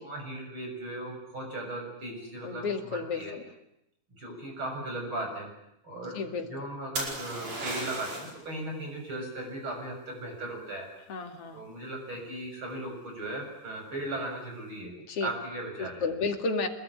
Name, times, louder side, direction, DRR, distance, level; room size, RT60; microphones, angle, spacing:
voice 1, 0.0-3.3 4.1-5.5 5.8-10.9 11.5-14.9 15.2-16.0, right 1 dB, 40° right, 3 dB, 7.9 m, -37 dB
voice 2, 2.4-3.4 6.1-6.5 11.1-11.6 15.1-15.3 15.8-16.7, left 4 dB, 50° left, 4 dB, 3.3 m, -32 dB
sound 1, 7.0-8.4 12.1-12.5, right 2 dB, 60° right, 6.4 m, -35 dB
26.5 x 21.5 x 9.8 m, 0.82 s
omnidirectional pair, 3.6 m